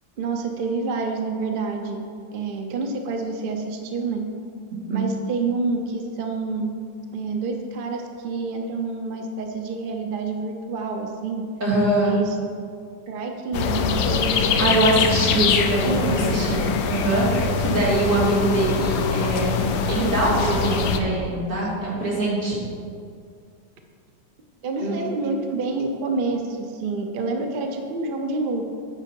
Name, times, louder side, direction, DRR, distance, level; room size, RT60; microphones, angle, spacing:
voice 1, 0.2-2.0 2.3-4.3 4.9-6.8 7.1-11.5 12.0-12.4 13.1-15.1 15.9-16.4 24.6-28.6, right 3 dB, 65° right, 3 dB, 0.5 m, -28 dB
voice 2, 11.6-12.1 14.6-19.5 19.9-22.7 24.8-25.0, right 2 dB, 45° right, -8 dB, 3.0 m, -23 dB
sound 1, 13.5-21.0, left 5 dB, 70° left, 1.1 m, -23 dB
10.0 x 5.9 x 4.5 m, 2.3 s
omnidirectional pair, 1.9 m